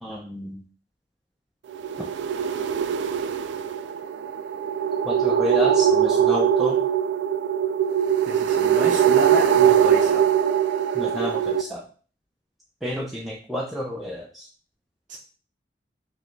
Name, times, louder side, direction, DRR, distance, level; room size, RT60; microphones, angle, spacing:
voice 1, 0.0-0.6 5.0-6.8 10.9-11.8 12.8-14.5, left 1 dB, ahead, -4 dB, 0.5 m, -30 dB
sound 1, 1.7-11.6, right 8 dB, 90° right, 0.3 m, -21 dB
voice 2, 8.3-10.2 15.1-15.2, right 2 dB, 45° right, -2 dB, 0.6 m, -31 dB
5.1 x 2.2 x 3.1 m, 0.41 s
head